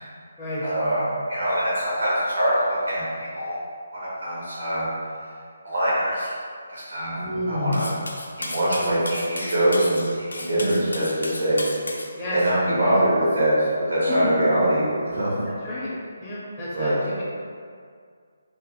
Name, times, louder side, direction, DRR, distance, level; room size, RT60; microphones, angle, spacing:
voice 1, 0.6-3.6 3.9-4.9 5.6-6.3 6.7-7.2 7.5-7.9 8.4-11.6 12.3-15.4 16.7-16.9, right 1 dB, 80° right, -8 dB, 1.4 m, -23 dB
voice 2, 7.2-7.8 12.2-12.4 12.9-13.0 14.1-14.3 15.6-15.9 16.2-17.2, left 1 dB, 10° left, -12 dB, 0.5 m, -29 dB
Cutlery silverware, 7.7-12.1, left 2 dB, 85° left, 0.4 m, -34 dB
3.0 x 2.1 x 3.0 m, 2.1 s
figure-of-eight pair, 155°, 0 cm